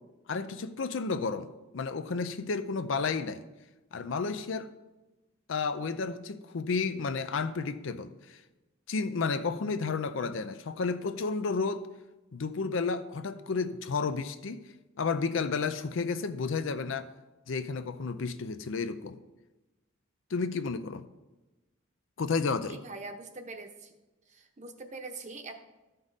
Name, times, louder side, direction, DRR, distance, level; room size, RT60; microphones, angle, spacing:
voice 1, 0.3-3.5 3.9-4.7 5.5-8.4 8.9-11.9 12.3-14.7 15.0-17.1 17.5-19.2 20.3-21.0 22.2-22.8, left 4 dB, 70° left, 0.5 m, -32 dB
voice 2, 22.7-23.9 24.3-25.5, right 3 dB, 35° right, 0.9 m, -43 dB
13.5 x 5.4 x 4.0 m
head